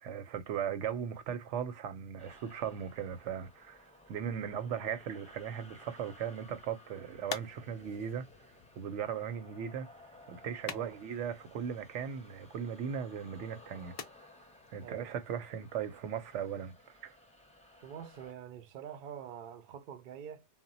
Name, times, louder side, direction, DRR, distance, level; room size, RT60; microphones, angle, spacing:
voice 1, 0.0-8.3 8.8-9.9 10.3-13.9 14.7-16.7 17.0-17.1, right 8 dB, 85° right, 0.9 m, -38 dB
sound 1, 2.2-18.3, left 1 dB, 10° left, 0.5 m, -58 dB
sound 2, 6.4-16.1, left 7 dB, 75° left, 0.3 m, -50 dB
voice 2, 10.7-11.0 14.8-15.2 17.7-20.5, right 8 dB, 60° right, 0.6 m, -46 dB
2.1 x 2.1 x 3.8 m
omnidirectional pair, 1.2 m